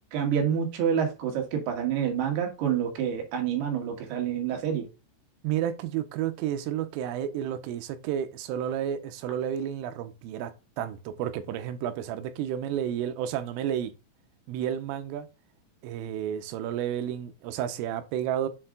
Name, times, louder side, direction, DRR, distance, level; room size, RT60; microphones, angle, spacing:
voice 1, 0.1-4.8, right 8 dB, 65° right, 3.2 m, -28 dB
voice 2, 5.4-10.5 10.8-13.9 14.5-15.3 15.8-18.5, right 10 dB, 90° right, 3.3 m, -31 dB
7.5 x 4.5 x 3.7 m
omnidirectional pair, 5.8 m